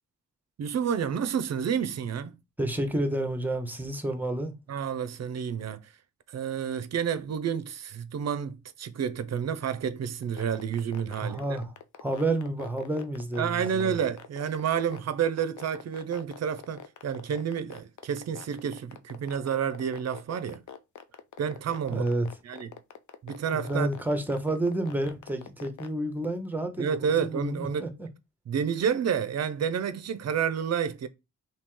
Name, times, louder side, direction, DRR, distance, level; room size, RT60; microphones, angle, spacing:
voice 1, 0.6-2.3 4.7-5.9 6.3-11.4 13.4-20.6 21.4-22.1 22.4-22.7 23.2-23.9 26.8-27.9 28.5-31.1, right 7 dB, 55° right, 0.4 m, -30 dB
voice 2, 2.6-4.5 11.2-11.7 12.0-14.0 21.9-22.3 23.5-28.1, right 1 dB, 5° right, 0.6 m, -30 dB
sound 1, 10.2-25.9, left 8 dB, 65° left, 0.5 m, -44 dB
2.9 x 2.7 x 3.6 m
wide cardioid pair, 130°, 32 cm